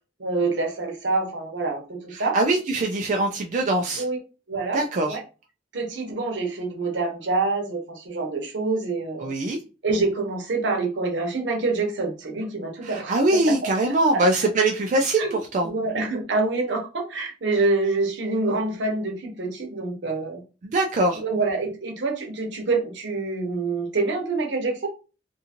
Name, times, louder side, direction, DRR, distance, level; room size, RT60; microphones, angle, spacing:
voice 1, 0.2-2.4 4.0-4.2 4.5-5.2 5.7-9.3 9.8-13.5 14.1-14.2 15.2-20.4 21.1-24.9, right 3 dB, 70° right, 2 dB, 0.8 m, -26 dB
voice 2, 2.1-4.0 4.7-5.2 9.2-9.6 12.8-15.7 20.6-21.2, right 2 dB, 40° right, 2 dB, 0.3 m, -22 dB
2.6 x 2.5 x 2.8 m, 0.33 s
head